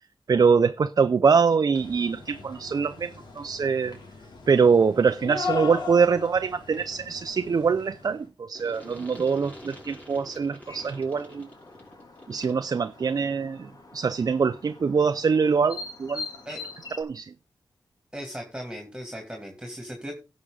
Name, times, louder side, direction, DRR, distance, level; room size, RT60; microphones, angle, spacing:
voice 1, 0.3-4.0 4.5-11.5 12.3-16.3 17.0-17.3, right 5 dB, 55° right, 0.5 m, -23 dB
sound 1, 1.7-8.2, left 5 dB, 80° left, 2.9 m, -38 dB
sound 2, 8.5-12.7, left 1 dB, 20° left, 5.4 m, -46 dB
sound 3, 10.6-17.0, left 3 dB, 55° left, 2.5 m, -43 dB
voice 2, 18.1-20.1, equal, 10° right, 2.6 m, -37 dB
17.5 x 6.1 x 3.9 m
wide cardioid pair, 95°, 8 cm